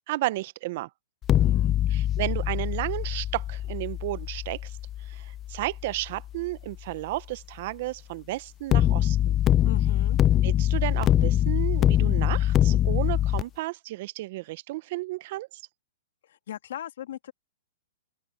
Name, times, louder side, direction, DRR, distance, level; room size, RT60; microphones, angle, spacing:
voice 1, 0.1-0.9 1.9-9.4 10.4-15.6, right 18 dB, 50° right, 0.8 m, -33 dB
sound 1, 1.2-6.3 8.7-13.4, left 12 dB, 25° left, 0.6 m, -24 dB
voice 2, 1.4-1.8 9.6-10.2 16.2-17.3, left 11 dB, 65° left, 2.1 m, -39 dB
open air
hypercardioid pair, 140°, 0 cm